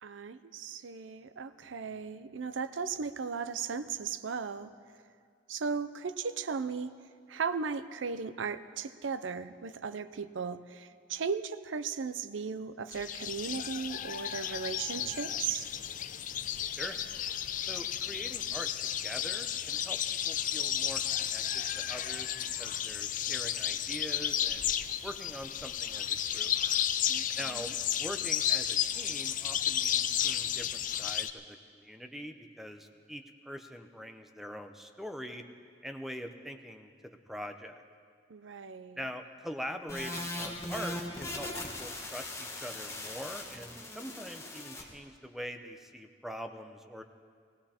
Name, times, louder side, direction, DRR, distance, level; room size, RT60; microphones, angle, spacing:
voice 1, 0.0-4.7 5.5-6.9 7.3-15.7 27.1-27.7 38.3-39.0, right 5 dB, 85° right, 12 dB, 0.6 m, -36 dB
sound 1, 12.9-31.3, left 10 dB, 45° left, 0.5 m, -33 dB
voice 2, 17.6-22.3 22.6-24.7 25.0-26.5 27.4-27.7 28.0-35.4 35.8-37.8 39.0-41.5 41.8-47.0, equal, ahead, 6 dB, 0.7 m, -43 dB
sound 2, 39.9-44.8, left 2 dB, 15° left, 1.5 m, -39 dB
17.5 x 17.0 x 4.4 m, 2.1 s
head